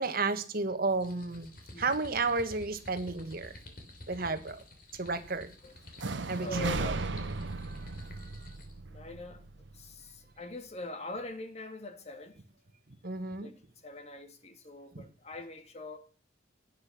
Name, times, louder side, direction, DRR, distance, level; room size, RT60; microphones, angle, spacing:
voice 1, 0.0-1.5 1.8-3.6 4.1-4.6 4.9-5.5 6.3-7.0 7.5-8.1 13.0-13.5 14.9-15.0, right 3 dB, 55° right, 1.5 m, -33 dB
sound 1, 0.9-8.8, left 1 dB, 50° left, 3.6 m, -51 dB
sound 2, 6.0-9.9, right 3 dB, 80° right, 1.0 m, -36 dB
voice 2, 6.4-7.0 8.9-9.4 9.7-12.4 13.4-16.0, left 2 dB, 35° left, 1.7 m, -43 dB
17.0 x 10.5 x 6.0 m
head